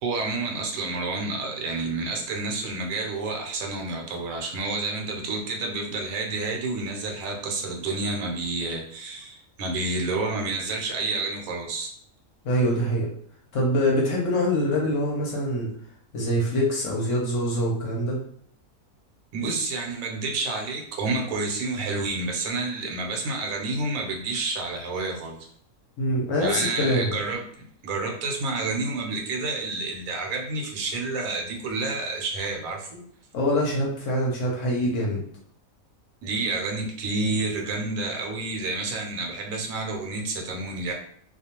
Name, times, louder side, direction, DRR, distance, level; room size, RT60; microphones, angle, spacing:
voice 1, 0.0-11.9 19.3-25.4 26.4-33.0 36.2-40.9, right 3 dB, 70° right, 1 dB, 1.0 m, -29 dB
voice 2, 12.4-13.1 13.5-15.7 16.1-18.2 26.0-27.2 33.3-35.2, equal, 65° left, -3 dB, 0.9 m, -24 dB
2.4 x 2.2 x 2.8 m, 0.63 s
omnidirectional pair, 1.5 m